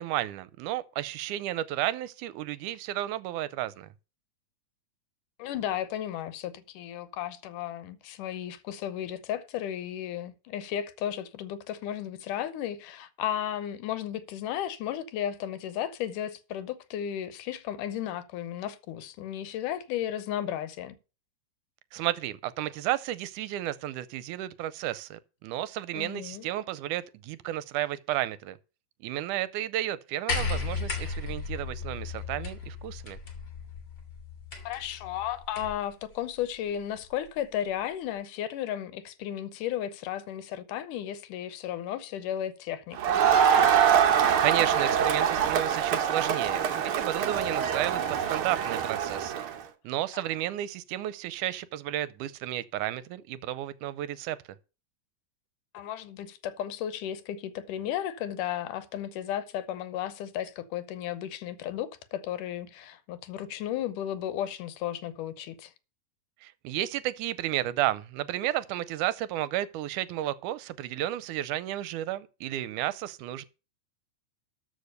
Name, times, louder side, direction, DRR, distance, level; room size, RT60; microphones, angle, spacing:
voice 1, 0.0-3.9 21.9-28.6 29.0-33.2 44.4-49.4 49.8-54.4 66.4-73.4, right 13 dB, 80° right, 2.1 m, -32 dB
voice 2, 5.4-21.0 25.9-26.5 34.7-43.2 50.1-50.3 55.7-65.7, left 11 dB, 80° left, 2.4 m, -34 dB
sound 1, 30.3-35.9 37.0-37.1, left 4 dB, 40° left, 2.7 m, -35 dB
Crowd, 43.0-49.5, right 8 dB, 60° right, 1.4 m, -24 dB
13.5 x 5.1 x 6.6 m
omnidirectional pair, 3.7 m